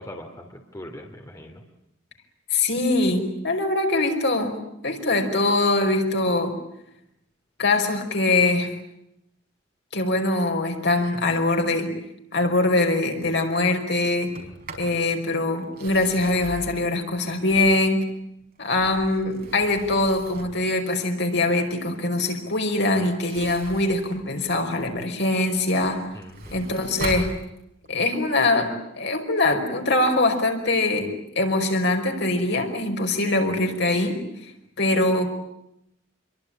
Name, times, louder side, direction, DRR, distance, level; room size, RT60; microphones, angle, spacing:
voice 1, 0.0-1.6 26.1-26.6, left 1 dB, 15° left, 3 dB, 3.2 m, -41 dB
voice 2, 2.5-6.6 7.6-8.7 9.9-11.9 12.3-14.3 14.8-18.0 18.6-26.1 26.5-27.3 27.9-34.5 34.8-35.3, left 2 dB, 60° left, 3 dB, 5.3 m, -23 dB
Sliding door, 14.2-15.0 15.6-18.0 18.5-20.7 23.1-25.0 25.5-28.0, right 2 dB, 50° right, 5.5 m, -40 dB
27.5 x 23.5 x 9.0 m, 0.82 s
head